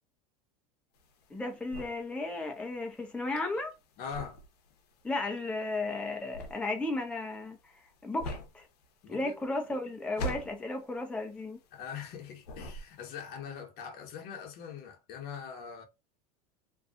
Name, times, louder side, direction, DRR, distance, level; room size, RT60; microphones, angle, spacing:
sound 1, 0.9-12.1 12.4-13.3, equal, 80° left, 0.7 m, -42 dB
voice 1, 1.3-3.7 5.0-7.6 8.0-8.7 9.1-11.6, left 2 dB, 5° left, 0.6 m, -34 dB
voice 2, 4.0-4.4 9.0-9.4 11.7-15.8, left 7 dB, 50° left, 1.0 m, -42 dB
2.7 x 2.3 x 2.4 m
supercardioid pair, 105°, 20 cm